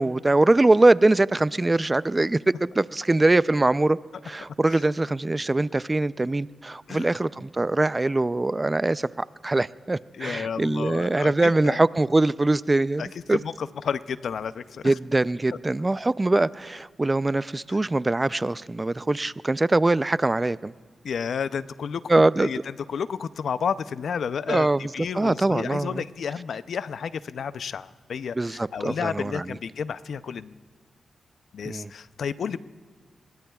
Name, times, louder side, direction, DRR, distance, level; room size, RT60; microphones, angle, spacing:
voice 1, 0.0-4.0 4.2-13.4 14.8-20.7 22.1-22.5 24.5-24.9 25.1-26.0 28.4-29.4 31.6-31.9, right 2 dB, 30° right, 17 dB, 0.4 m, -22 dB
voice 2, 10.2-11.8 13.0-14.9 17.7-17.8 21.0-22.0 22.4-24.7 24.9-30.6 31.5-32.6, left 6 dB, 80° left, 15 dB, 0.5 m, -31 dB
27.5 x 21.5 x 2.4 m, 1.5 s
cardioid pair, 50°, 0 cm